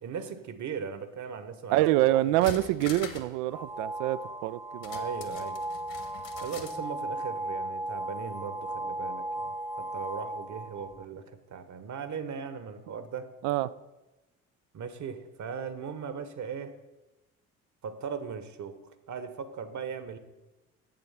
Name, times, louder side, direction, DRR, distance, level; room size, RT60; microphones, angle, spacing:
voice 1, 0.0-2.5 4.9-5.6 6.4-13.3 14.7-16.8 17.8-18.8 19.1-20.2, right 6 dB, 40° right, 11 dB, 1.1 m, -38 dB
voice 2, 1.7-5.0 13.4-13.7, right 15 dB, 65° right, 17 dB, 0.5 m, -26 dB
sound 1, 2.2-3.4 3.6-3.7 4.8-6.8 7.1-7.2, left 7 dB, 50° left, 1.5 m, -43 dB
sound 2, 3.5-11.0, right 1 dB, 5° right, 0.9 m, -36 dB
7.7 x 7.7 x 5.8 m, 1.1 s
figure-of-eight pair, 50°, 43 cm